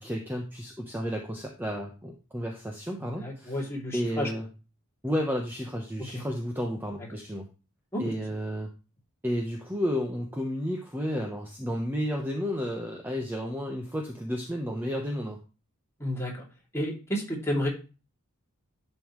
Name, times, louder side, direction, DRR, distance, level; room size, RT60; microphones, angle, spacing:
voice 1, 0.0-3.6 3.9-4.5 5.0-7.5 8.0-8.7 9.2-15.4, equal, 10° right, 0 dB, 1.0 m, -32 dB
voice 2, 3.0-4.3 6.1-6.2 7.9-8.0 16.0-16.4 16.7-17.7, equal, 10° left, -3 dB, 2.8 m, -31 dB
11.0 x 5.4 x 3.2 m, 0.32 s
head